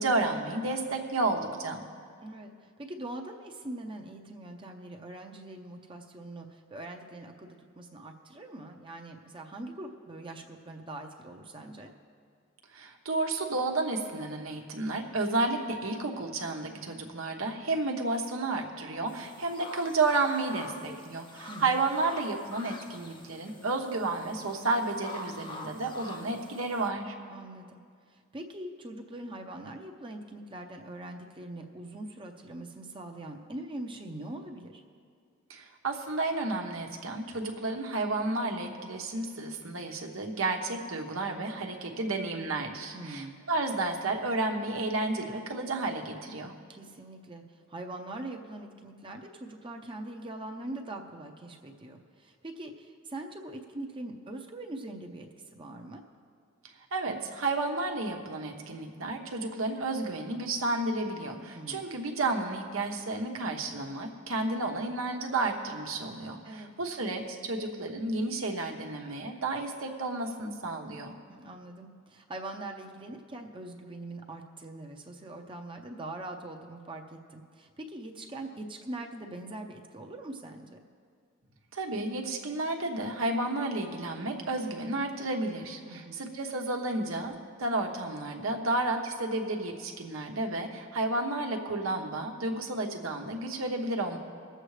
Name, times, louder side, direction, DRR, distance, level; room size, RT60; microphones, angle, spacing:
voice 1, 0.0-1.8 12.7-27.1 35.5-46.5 56.9-71.2 81.7-94.2, right 2 dB, 90° right, 3 dB, 1.1 m, -31 dB
voice 2, 2.2-11.9 21.5-21.8 27.3-27.8 28.1-34.8 42.9-43.4 46.7-56.0 61.5-61.9 66.4-66.7 71.3-80.8 85.9-86.3, right 1 dB, 25° right, 3 dB, 0.7 m, -42 dB
sound 1, 19.1-26.9, left 2 dB, 25° left, 0.8 m, -46 dB
22.5 x 7.7 x 3.3 m, 2.1 s
head